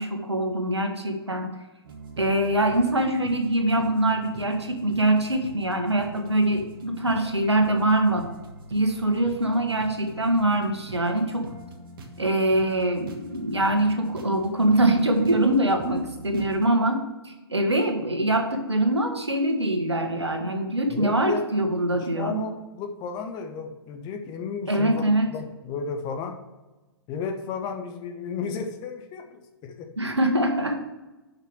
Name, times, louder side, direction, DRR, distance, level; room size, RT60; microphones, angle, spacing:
voice 1, 0.0-1.5 2.2-8.3 8.7-11.5 12.2-22.4 24.7-25.3 30.0-30.8, right 1 dB, 90° right, 4 dB, 1.6 m, -23 dB
sound 1, 1.8-16.7, right 1 dB, 55° right, 1.4 m, -43 dB
voice 2, 20.9-21.4 21.9-26.3 27.1-29.9, left 5 dB, 30° left, 5 dB, 1.2 m, -33 dB
6.7 x 5.9 x 6.4 m, 1.1 s
figure-of-eight pair, 115°, 14 cm